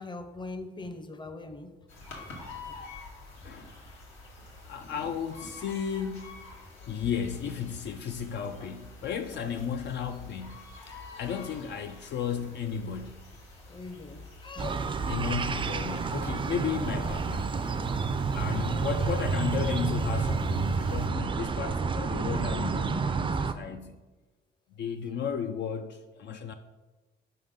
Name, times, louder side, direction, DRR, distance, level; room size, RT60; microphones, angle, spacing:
voice 1, 0.0-1.8 2.3-2.4 2.6-3.0 3.4-3.6 8.6-8.7 9.4-9.7 13.7-14.9 18.5-18.9 23.7-23.8, left 3 dB, 25° left, 0.6 m, -42 dB
sound 1, 1.9-21.1, left 3 dB, 85° left, 1.7 m, -48 dB
voice 2, 3.4-3.8 4.6-13.3 15.1-17.6 18.3-23.9 24.8-26.5, left 7 dB, 60° left, 0.4 m, -34 dB
sound 2, 14.6-23.5, right 5 dB, 25° right, 0.4 m, -29 dB
5.3 x 3.8 x 5.2 m
cardioid pair, 90°, 20 cm